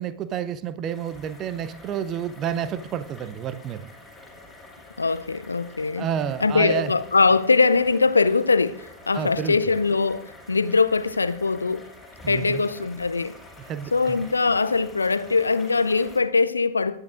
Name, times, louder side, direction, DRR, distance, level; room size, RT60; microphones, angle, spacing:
voice 1, 0.0-3.9 6.0-6.9 9.1-9.6 12.2-12.6 13.6-14.2, right 9 dB, 30° right, 0.7 m, -30 dB
sound 1, 0.8-16.2, left 2 dB, ahead, 4.4 m, -47 dB
voice 2, 5.0-6.1 6.4-11.8 12.3-13.4 13.9-17.0, left 4 dB, 80° left, 0.5 m, -22 dB
18.5 x 11.0 x 2.6 m
figure-of-eight pair, 90°, 0 cm